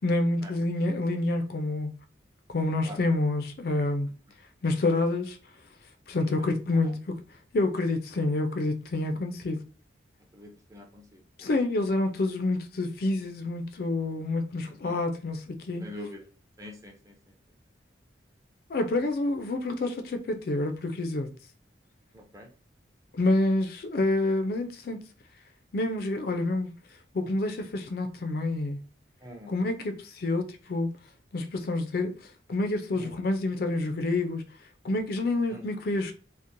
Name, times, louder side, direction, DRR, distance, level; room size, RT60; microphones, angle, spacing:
voice 1, 0.0-1.9 2.5-4.1 4.6-5.4 6.1-7.2 7.5-9.6 11.4-15.9 18.7-21.3 23.1-25.0 25.7-26.7 27.1-28.8 29.5-30.9 31.3-32.1 32.5-34.5 34.8-36.1, left 2 dB, 55° left, 0.4 m, -28 dB
voice 2, 10.3-11.2 14.7-15.0 15.8-16.2 16.6-17.1 22.1-22.5 29.2-29.5 33.0-33.1 35.5-35.7, left 1 dB, 15° right, 0.5 m, -44 dB
2.9 x 2.0 x 2.5 m
head